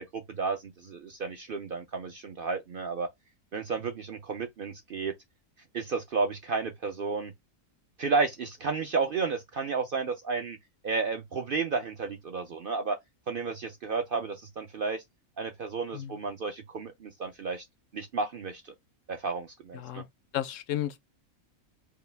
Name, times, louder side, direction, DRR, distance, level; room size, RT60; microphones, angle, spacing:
voice 1, 0.0-3.1 3.5-5.1 5.7-7.3 8.0-10.6 10.8-13.0 13.3-15.0 15.4-17.6 17.9-18.7 19.1-20.0, right 4 dB, 60° right, 0.5 m, -32 dB
voice 2, 19.7-20.1 20.3-21.0, left 12 dB, 70° left, 0.9 m, -33 dB
4.9 x 2.3 x 3.3 m
omnidirectional pair, 1.5 m